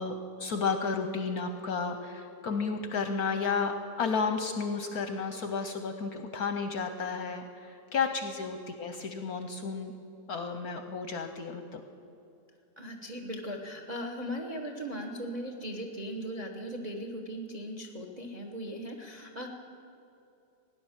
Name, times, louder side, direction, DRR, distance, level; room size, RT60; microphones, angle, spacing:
voice 1, 0.0-9.9 10.3-11.8, left 5 dB, 65° left, 7 dB, 1.0 m, -32 dB
voice 2, 12.8-19.5, equal, 35° right, 4 dB, 0.7 m, -38 dB
16.5 x 9.9 x 7.3 m, 2.7 s
omnidirectional pair, 2.2 m